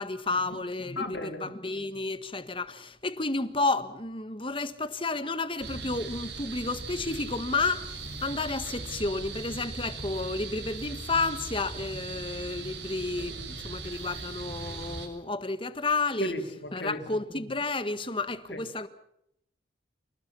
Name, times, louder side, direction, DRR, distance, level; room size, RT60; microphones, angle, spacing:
voice 1, 0.0-16.3 16.7-18.9, left 3 dB, 30° left, 1.6 m, -31 dB
voice 2, 1.0-1.5 16.2-17.0 18.5-18.6, left 1 dB, 85° left, 4.5 m, -34 dB
sound 1, 5.6-15.1, right 3 dB, 85° right, 6.4 m, -39 dB
28.5 x 19.0 x 7.0 m
head